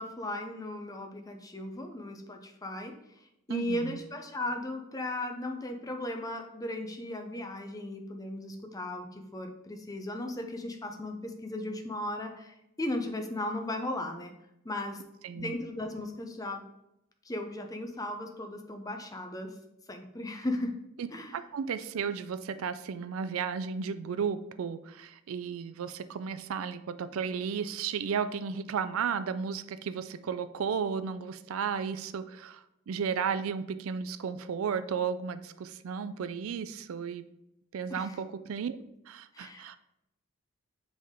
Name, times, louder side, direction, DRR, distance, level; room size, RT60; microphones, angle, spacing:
voice 1, 0.0-14.3 14.6-15.0 15.3-16.6 17.2-19.6 19.9-20.7 21.1-21.4 37.9-38.2 39.3-39.7, left 1 dB, 15° left, 4 dB, 0.6 m, -36 dB
voice 2, 3.5-4.0 15.2-15.5 21.0-21.1 21.3-37.2 37.7-39.8, right 6 dB, 75° right, 12 dB, 0.4 m, -34 dB
7.6 x 3.5 x 3.6 m, 0.85 s
head